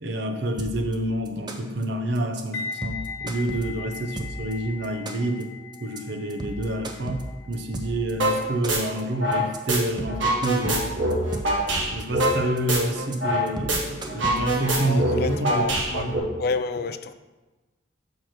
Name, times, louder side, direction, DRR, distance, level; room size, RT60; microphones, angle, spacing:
voice 1, 0.0-5.5 5.8-11.0 11.9-16.3, right 1 dB, 60° right, 0.7 m, -28 dB
sound 1, 0.6-0.9 1.2-1.8 2.1-2.4 2.7-4.5 4.8-5.4 5.7-6.0 6.3-8.1 8.4-9.0 9.3-9.6 9.9-11.7 12.0-12.6 12.9-13.1 13.5-14.7, right 1 dB, 20° right, 0.5 m, -34 dB
sound 2, 2.5-11.5 11.7-12.0, left 5 dB, 80° left, 1.1 m, -41 dB
sound 3, 8.2-8.4 8.7-9.8 10.1-13.4 13.7-13.8 14.1-16.2, right 1 dB, 80° right, 1.5 m, -24 dB
voice 2, 14.9-17.1, left 4 dB, 50° left, 0.4 m, -29 dB
5.9 x 4.6 x 6.4 m
head